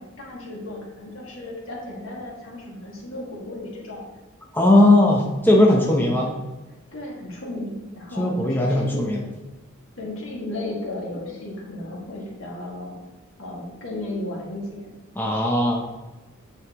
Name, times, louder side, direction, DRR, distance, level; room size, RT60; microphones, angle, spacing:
voice 1, 0.0-4.1 4.6-5.0 5.6-6.3 6.9-9.1 10.0-13.0 13.4-14.9, left 1 dB, 75° left, -3 dB, 2.1 m, -34 dB
voice 2, 4.5-6.3 8.2-9.2 15.2-15.9, left 1 dB, 10° left, -1 dB, 0.9 m, -18 dB
8.6 x 5.7 x 3.0 m, 1.1 s
head